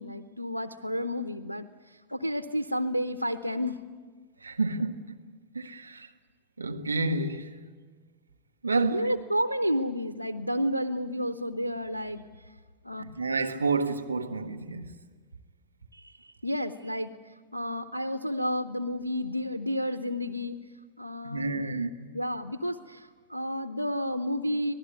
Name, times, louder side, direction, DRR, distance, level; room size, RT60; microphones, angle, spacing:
voice 1, 0.0-3.8 8.9-12.2 12.8-13.0 15.9-17.1 17.5-20.6 21.0-21.6 22.1-24.7, equal, 90° left, 0.8 m, -31 dB
voice 2, 4.4-5.1 5.5-6.1 6.6-7.5 8.6-9.1 13.0-15.0 21.2-22.1, right 3 dB, 80° right, 1.6 m, -29 dB
25.5 x 19.0 x 9.5 m
figure-of-eight pair, 90°, 0 cm